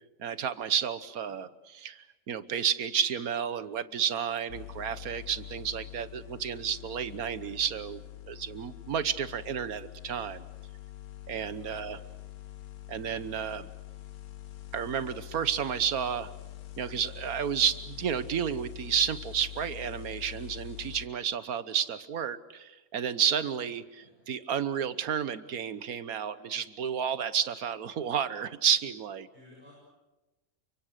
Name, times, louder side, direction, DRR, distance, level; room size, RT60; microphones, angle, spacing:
voice 1, 0.2-8.0 8.3-10.4 11.3-12.0 12.9-13.7 14.7-16.3 16.8-29.3, right 8 dB, 80° right, 14 dB, 1.5 m, -31 dB
sound 1, 4.5-21.1, left 14 dB, 90° left, 1.6 m, -45 dB
voice 2, 11.6-12.1 23.9-24.2 29.3-29.7, left 1 dB, 30° right, -4 dB, 8.3 m, -56 dB
29.5 x 25.0 x 6.7 m, 1.1 s
omnidirectional pair, 1.5 m